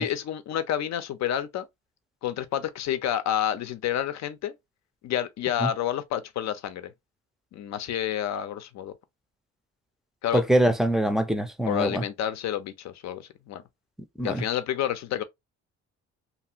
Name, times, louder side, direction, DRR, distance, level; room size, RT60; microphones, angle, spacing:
voice 1, 0.0-1.7 2.2-4.5 5.0-6.9 7.5-8.9 10.2-10.4 11.6-13.6 14.2-15.2, left 10 dB, 65° left, 0.6 m, -29 dB
voice 2, 10.3-12.0 14.2-14.4, right 1 dB, ahead, 0.5 m, -23 dB
2.8 x 2.5 x 2.8 m
cardioid pair, 90°, 30 cm